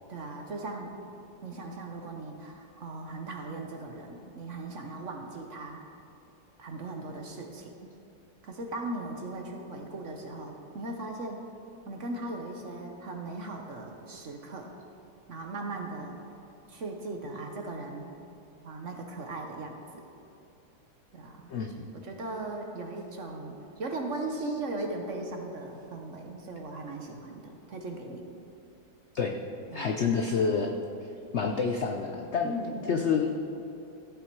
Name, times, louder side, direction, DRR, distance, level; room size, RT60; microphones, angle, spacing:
voice 1, 0.1-0.9 1.4-5.8 6.6-7.9 8.4-11.4 11.9-14.7 15.3-16.2 16.7-18.1 18.6-20.0 21.1-21.5 22.0-28.2 29.7-29.9 32.4-32.9, right 2 dB, 50° right, 2 dB, 1.1 m, -38 dB
voice 2, 21.5-21.9 29.1-29.4 29.7-30.7 31.3-33.3, left 5 dB, 80° left, 3 dB, 0.6 m, -28 dB
14.0 x 8.8 x 4.6 m, 2.7 s
omnidirectional pair, 2.0 m